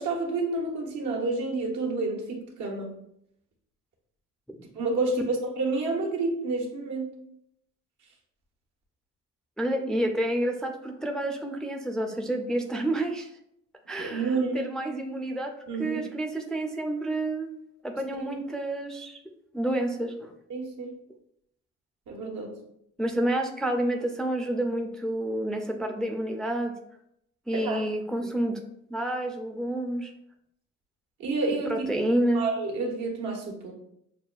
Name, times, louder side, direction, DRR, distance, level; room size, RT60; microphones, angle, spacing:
voice 1, 0.0-3.0 4.7-7.2 14.0-14.6 15.7-16.0 18.2-18.3 20.5-21.0 22.1-22.5 27.5-27.9 31.2-31.9 32.2-33.7, right 3 dB, 75° right, 0 dB, 1.1 m, -29 dB
voice 2, 9.6-13.3 13.9-15.5 15.8-17.5 17.8-19.2 19.5-20.3 23.0-26.7 27.5-28.6 28.9-30.1 31.7-32.4, right 1 dB, ahead, 3 dB, 0.4 m, -29 dB
6.5 x 2.2 x 2.4 m, 0.74 s
cardioid pair, 90°, 30 cm